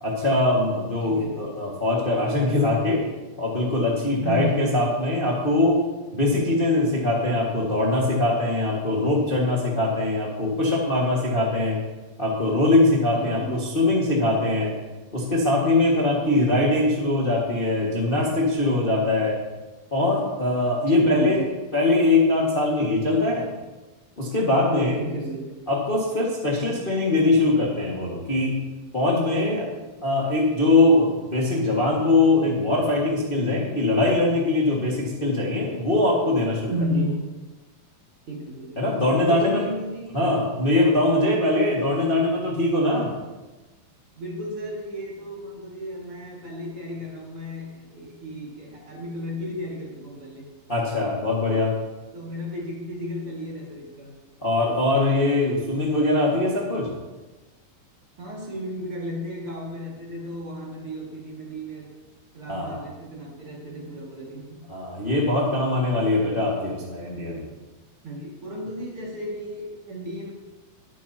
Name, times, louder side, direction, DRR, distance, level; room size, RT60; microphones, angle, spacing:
voice 1, 0.0-3.0 3.4-5.9 6.1-11.8 12.2-14.7 15.1-19.3 19.9-21.4 21.7-23.5 24.2-25.0 25.7-28.6 28.9-29.6 30.0-36.7 38.8-39.6 40.1-43.1 50.7-51.7 54.4-56.9 62.5-62.8 64.7-67.5, left 2 dB, 25° left, -4 dB, 1.2 m, -22 dB
voice 2, 1.0-1.5 4.2-4.8 13.1-13.7 16.2-16.8 20.9-21.5 25.0-25.5 29.4-29.5 36.7-37.2 38.3-38.8 39.1-40.2 41.1-41.4 44.1-50.5 52.1-54.2 58.2-61.9 62.3-64.7 68.0-70.3, equal, 45° right, -3 dB, 2.8 m, -33 dB
21.0 x 9.1 x 2.9 m, 1.1 s
omnidirectional pair, 4.0 m